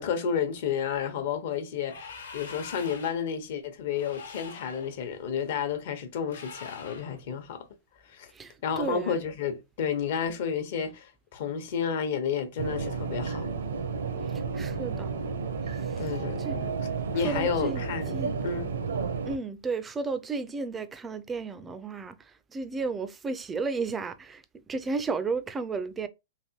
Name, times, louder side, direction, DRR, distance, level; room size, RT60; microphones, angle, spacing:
voice 1, 0.0-7.6 8.1-8.3 8.6-13.6 16.0-16.7 17.1-18.7, left 7 dB, 55° left, 0.9 m, -31 dB
sound 1, 1.8-3.3 3.9-4.9 6.3-7.2, left 5 dB, 90° left, 1.0 m, -44 dB
voice 2, 8.3-9.2 14.5-15.1 16.4-16.6 17.2-17.8 18.1-18.4 19.2-22.2 22.5-24.4 24.7-26.1, right 4 dB, 15° right, 0.3 m, -33 dB
sound 2, 12.6-19.4, right 5 dB, 85° right, 0.7 m, -32 dB
3.3 x 2.9 x 2.8 m
hypercardioid pair, 150°, 0 cm